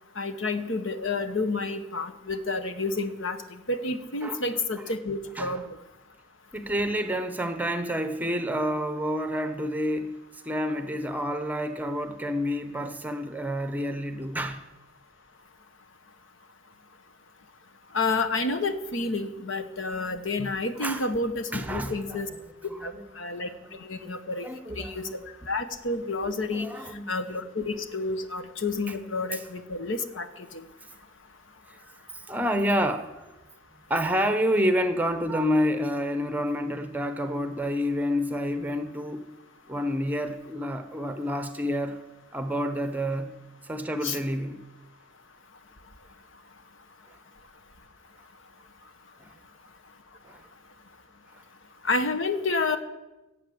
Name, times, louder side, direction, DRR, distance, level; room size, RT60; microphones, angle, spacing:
voice 1, 0.2-5.8 17.9-22.3 22.8-23.5 23.8-24.5 24.8-25.2 25.5-26.7 27.1-30.6 44.0-44.2 51.8-52.8, left 3 dB, 90° left, 9 dB, 1.2 m, -30 dB
voice 2, 6.5-10.1 10.4-14.6 20.4-20.5 20.8-21.0 21.5-22.2 22.7-23.0 23.7-24.1 24.4-25.1 26.5-27.0 29.3-29.4 32.1-33.1 33.9-39.3 39.7-42.0 42.3-43.3 43.6-44.6 49.2-49.3 50.2-50.4, equal, 10° right, 9 dB, 0.9 m, -29 dB
16.0 x 7.9 x 7.8 m, 1.1 s
head